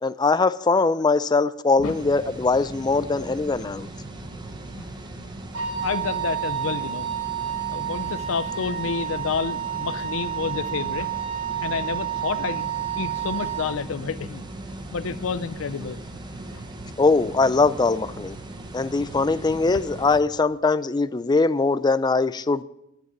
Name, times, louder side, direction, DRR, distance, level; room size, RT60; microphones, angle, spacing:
voice 1, 0.0-3.9 17.0-18.4 18.7-22.6, left 3 dB, 20° left, 0.4 m, -21 dB
sound 1, 1.8-20.2, right 2 dB, 20° right, 1.0 m, -38 dB
Wind instrument woodwind instrument, 5.5-13.7, right 10 dB, 65° right, 3.4 m, -30 dB
voice 2, 5.8-7.1 7.7-11.1 11.6-14.4 14.9-16.0 16.5-16.6 19.7-19.8, left 5 dB, 75° left, 0.5 m, -29 dB
10.5 x 8.4 x 8.0 m
head